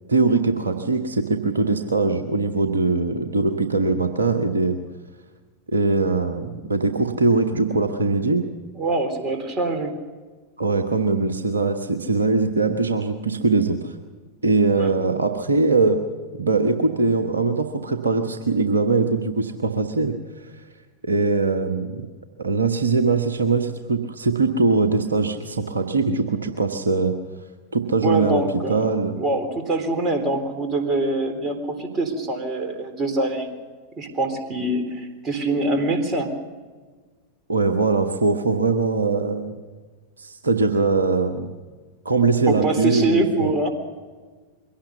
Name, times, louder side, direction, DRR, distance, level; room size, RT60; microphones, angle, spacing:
voice 1, 0.1-4.8 5.7-8.5 10.6-14.0 14.4-16.0 16.4-20.5 21.0-22.1 22.4-27.2 27.7-28.4 28.7-29.1 37.5-39.5 40.2-41.5 42.0-43.5, right 3 dB, 75° right, 6 dB, 1.3 m, -21 dB
voice 2, 8.8-9.9 14.7-14.9 28.0-28.8 29.2-33.5 34.0-36.3 42.5-43.7, right 2 dB, 25° right, 6 dB, 3.9 m, -24 dB
22.5 x 17.5 x 6.9 m, 1.4 s
figure-of-eight pair, 90°, 0 cm